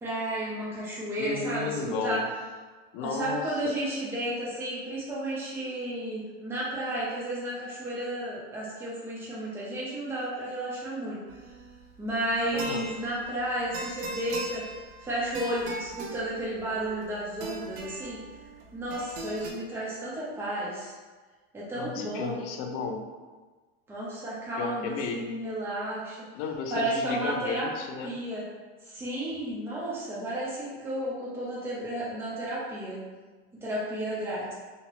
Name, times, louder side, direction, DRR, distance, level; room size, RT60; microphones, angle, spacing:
voice 1, 0.0-2.2 3.0-11.2 12.0-14.6 15.0-18.2 18.7-20.9 21.5-22.4 23.9-26.2 26.7-27.7 28.0-28.4 28.8-33.0 33.6-34.5, right 1 dB, 10° right, -7 dB, 0.8 m, -32 dB
voice 2, 1.2-2.2 2.9-3.7 12.5-12.9 21.7-23.1 24.5-25.4 26.3-28.1, left 5 dB, 50° left, 3 dB, 0.5 m, -33 dB
sound 1, 11.3-19.5, right 2 dB, 80° right, 0.8 m, -40 dB
2.9 x 2.8 x 3.0 m, 1.3 s
supercardioid pair, 135°, 31 cm